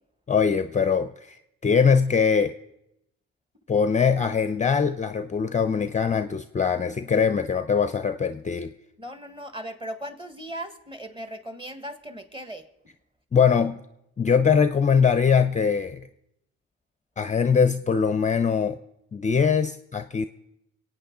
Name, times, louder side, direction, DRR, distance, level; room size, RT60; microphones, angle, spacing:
voice 1, 0.3-2.5 3.7-8.7 13.3-13.8 14.2-16.0 17.2-18.8 19.1-20.2, left 6 dB, 25° left, 10 dB, 0.5 m, -22 dB
voice 2, 9.0-12.7, right 1 dB, 15° right, 8 dB, 1.6 m, -37 dB
24.5 x 8.8 x 3.9 m, 0.85 s
cardioid pair, 90°, 30 cm